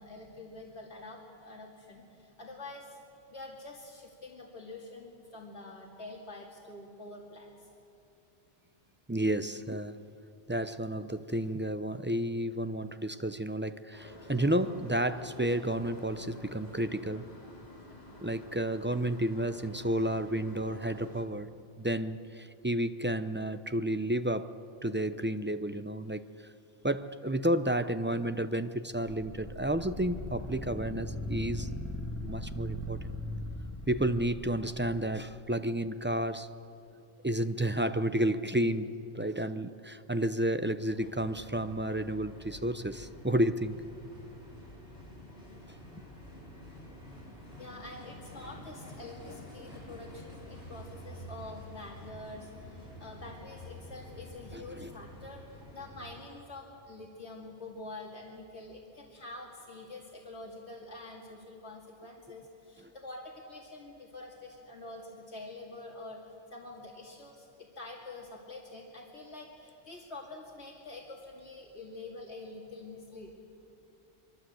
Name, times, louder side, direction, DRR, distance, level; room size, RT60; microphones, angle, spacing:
voice 1, 0.0-3.0 3.3-7.7 47.6-55.4 55.7-66.2 66.5-73.4, left 2 dB, 80° left, -1 dB, 2.6 m, -46 dB
voice 2, 9.1-10.0 10.5-17.3 18.2-21.5 21.8-24.5 24.8-26.3 26.8-31.7 32.2-33.1 33.9-36.5 37.2-43.8 54.5-54.9, right 1 dB, 15° right, 10 dB, 0.4 m, -31 dB
sound 1, 13.9-21.2, left 1 dB, 40° left, 3.1 m, -49 dB
sound 2, 29.1-35.2, left 1 dB, 10° left, 2.0 m, -39 dB
sound 3, 40.9-56.2, left 1 dB, 65° left, 8.0 m, -48 dB
24.5 x 23.5 x 7.9 m, 2.7 s
omnidirectional pair, 1.1 m